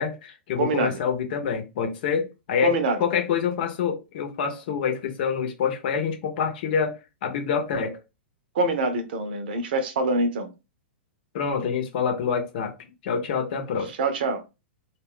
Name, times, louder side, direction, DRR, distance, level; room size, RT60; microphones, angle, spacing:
voice 1, 0.0-2.7 3.0-8.0 11.3-12.7 13.0-13.9, left 6 dB, 55° left, 0.8 m, -26 dB
voice 2, 0.6-1.0 2.6-3.0 8.5-10.5 14.0-14.4, right 2 dB, 60° right, 0.8 m, -24 dB
2.4 x 2.2 x 3.6 m
hypercardioid pair, 105°, 6 cm